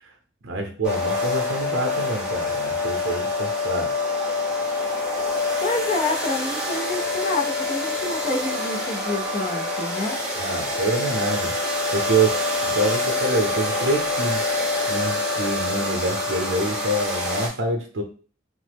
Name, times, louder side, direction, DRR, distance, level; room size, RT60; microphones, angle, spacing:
voice 1, 0.4-3.9 10.4-12.4 12.6-14.5 14.9-18.0, right 2 dB, 80° right, 3 dB, 0.6 m, -26 dB
sound 1, 0.8-17.5, left 2 dB, 5° right, 0.7 m, -26 dB
voice 2, 5.6-10.2, left 3 dB, 40° left, 2 dB, 0.5 m, -28 dB
3.1 x 2.0 x 3.3 m, 0.38 s
head